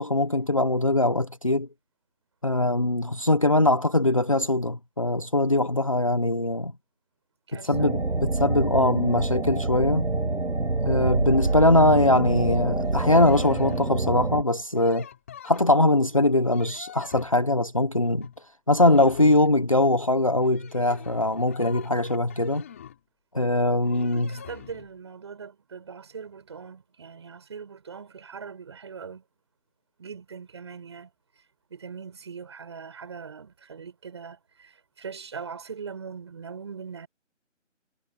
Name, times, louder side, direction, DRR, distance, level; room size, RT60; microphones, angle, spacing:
voice 1, 0.0-1.7 2.4-6.7 7.6-10.0 10.8-15.1 15.4-18.3 18.7-22.6 23.3-24.3, left 1 dB, 25° left, 1.1 m, -22 dB
voice 2, 7.5-7.9 24.0-29.2 30.0-31.1 31.7-37.1, right 6 dB, 20° right, 7.7 m, -41 dB
sound 1, 7.7-14.4, right 2 dB, 65° right, 6.1 m, -26 dB
sound 2, 11.4-12.0 12.8-14.0 14.8-16.0 16.4-17.4 18.0-18.4 18.7-19.7 20.4-23.0 23.8-24.9, left 9 dB, 10° left, 3.8 m, -45 dB
figure-of-eight pair, 175°, 38 cm